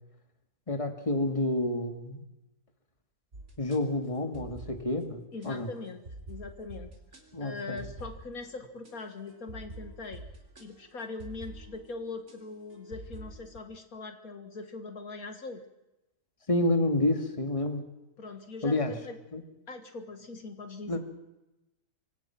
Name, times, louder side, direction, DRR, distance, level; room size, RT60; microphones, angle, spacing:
voice 1, 0.7-2.2 3.6-5.7 7.3-7.9 16.5-17.8 18.6-18.9 19.3-19.4 20.9-21.0, left 2 dB, 20° left, 6 dB, 2.3 m, -29 dB
sound 1, 3.3-3.8 4.3-5.1 5.4-5.5 6.1-13.6, right 2 dB, 50° right, 3.8 m, -47 dB
voice 2, 5.3-7.0 7.4-10.2 10.6-15.6 18.2-19.2 19.7-21.0, left 3 dB, 70° left, 7 dB, 2.2 m, -41 dB
25.5 x 24.5 x 6.0 m, 0.96 s
omnidirectional pair, 1.6 m